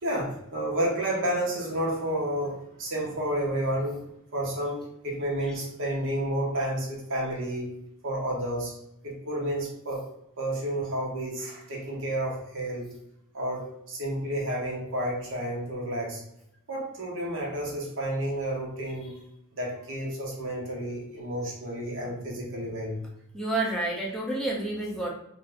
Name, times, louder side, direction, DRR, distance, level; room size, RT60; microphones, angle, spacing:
voice 1, 0.0-7.7 8.0-8.7 9.0-10.1 10.4-12.9 13.3-16.2 16.7-19.2 19.5-23.0, right 1 dB, 60° right, -2 dB, 0.9 m, -31 dB
voice 2, 23.3-25.1, right 2 dB, ahead, -4 dB, 0.5 m, -29 dB
2.6 x 2.4 x 3.3 m, 0.80 s
head